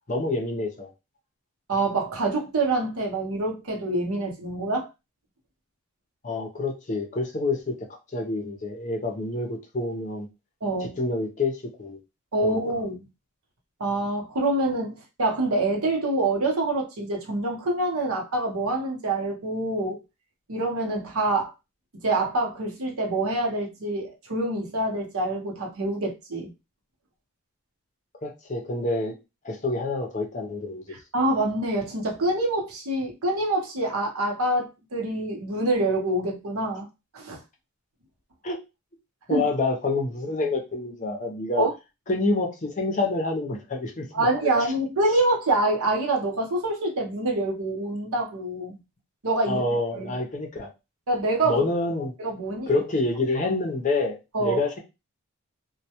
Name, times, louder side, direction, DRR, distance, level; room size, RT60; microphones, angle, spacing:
voice 1, 0.1-0.9 6.2-7.7 8.1-10.3 10.8-12.0 12.4-12.6 28.2-29.1 29.4-30.8 38.4-38.6 39.3-41.6 42.1-44.3 49.5-50.7 51.4-52.1 52.7-54.8, left 2 dB, 35° left, 0.5 m, -27 dB
voice 2, 1.7-4.9 10.6-11.0 12.3-13.0 13.8-20.0 20.5-21.5 22.0-26.5 30.9-36.9 37.1-37.4 39.3-39.4 41.6-41.7 44.1-48.8 49.2-49.6 49.9-50.2 51.1-51.6 52.2-52.7 54.3-54.6, right 2 dB, 85° right, 0.8 m, -26 dB
2.1 x 2.1 x 2.8 m
head